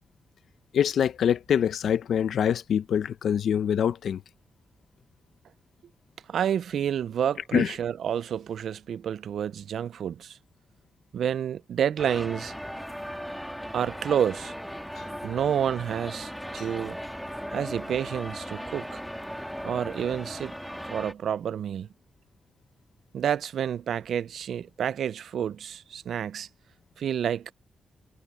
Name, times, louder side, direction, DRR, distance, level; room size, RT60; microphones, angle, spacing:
voice 1, 0.7-4.2 7.5-7.7, left 8 dB, 90° left, 0.8 m, -24 dB
voice 2, 6.3-10.4 11.1-12.5 13.7-14.5 15.2-17.0 17.5-19.0 19.6-20.5 20.8-21.9 23.1-26.5 27.0-27.5, right 9 dB, 90° right, 0.4 m, -29 dB
sound 1, 12.0-21.1, equal, ahead, 1.9 m, -37 dB
wide cardioid pair, 140°, 0 cm